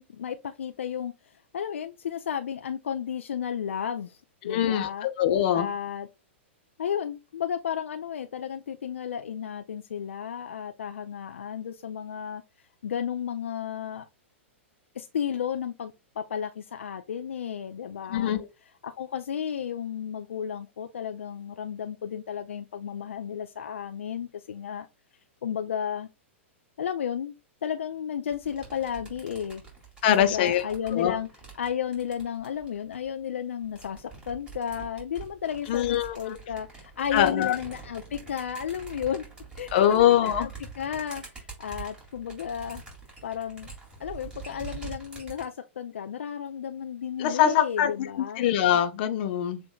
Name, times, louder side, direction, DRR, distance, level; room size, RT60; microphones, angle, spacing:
voice 1, 0.0-4.2 4.4-5.1 5.5-6.1 6.8-12.4 12.8-14.0 15.0-18.4 18.8-24.9 25.4-26.1 26.8-27.3 27.6-29.6 30.1-31.3 31.6-39.2 39.6-40.5 40.8-42.8 43.2-43.7 44.0-48.4, left 8 dB, 75° left, 0.4 m, -33 dB
voice 2, 4.4-5.7 18.1-18.5 30.0-30.6 30.9-31.1 35.7-36.4 37.1-37.6 39.7-40.5 47.2-47.9 48.4-49.6, left 10 dB, 50° left, 0.7 m, -23 dB
sound 1, 28.3-33.1 33.6-45.5, right 5 dB, 10° right, 2.2 m, -45 dB
6.9 x 2.5 x 2.2 m
hypercardioid pair, 110°, 7 cm